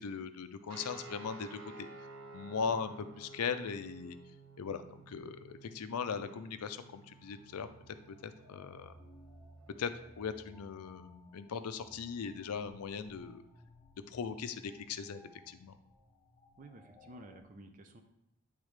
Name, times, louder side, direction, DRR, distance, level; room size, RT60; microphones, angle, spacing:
voice 1, 0.0-1.9 2.3-4.2 4.6-8.9 9.8-9.9 10.2-13.4 14.1-15.2 15.5-15.8, left 6 dB, 90° left, 11 dB, 0.5 m, -39 dB
sound 1, 0.7-9.6, right 3 dB, 80° right, 1.1 m, -53 dB
sound 2, 7.1-17.4, left 1 dB, 20° left, 0.8 m, -60 dB
voice 2, 16.6-18.0, right 1 dB, 35° right, 6 dB, 0.5 m, -52 dB
8.8 x 3.6 x 3.3 m, 0.84 s
head